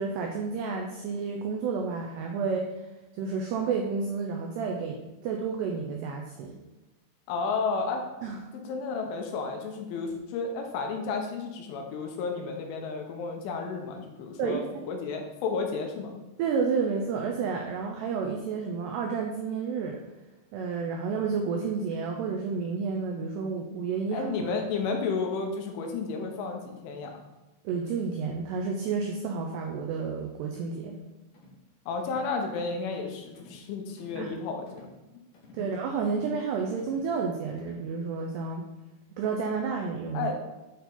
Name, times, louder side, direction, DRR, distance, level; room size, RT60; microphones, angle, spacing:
voice 1, 0.0-2.6 3.2-6.6 8.2-8.4 14.4-14.6 16.4-20.0 20.5-24.5 27.6-31.0 34.2-34.3 35.5-38.7 39.2-40.3, right 5 dB, 85° right, 1 dB, 2.3 m, -30 dB
voice 2, 7.3-8.0 8.5-14.6 14.9-16.1 24.1-27.1 31.9-34.9 35.6-35.7 40.1-40.4, left 4 dB, 80° left, 3 dB, 3.4 m, -32 dB
sound 1, 31.3-31.6 32.0-32.3 32.7-32.9 33.3-33.7 34.0-34.3 34.7-35.0 35.3-35.7 36.1-36.4 36.8-37.1 37.6-37.9, left 3 dB, 65° left, 1.8 m, -52 dB
8.4 x 4.6 x 3.9 m, 1.0 s
omnidirectional pair, 5.5 m